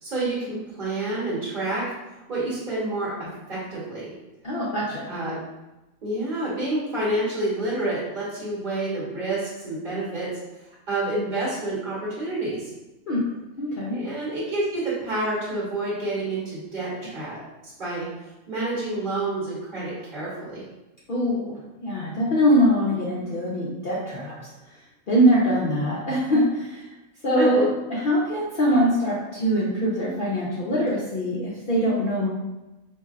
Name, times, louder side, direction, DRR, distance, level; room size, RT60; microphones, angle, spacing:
voice 1, 0.0-1.8 2.3-3.1 3.5-4.1 5.1-5.4 6.0-10.3 10.9-12.7 13.9-17.4 17.6-18.0 18.5-20.6 27.4-27.6, right 2 dB, 40° right, -8 dB, 1.0 m, -28 dB
voice 2, 4.4-5.1 13.1-13.2 13.6-14.0 21.1-21.5 21.8-24.4 25.1-26.9 27.2-32.3, equal, 55° left, -6 dB, 0.6 m, -23 dB
4.2 x 2.6 x 2.4 m, 1.0 s
omnidirectional pair, 1.4 m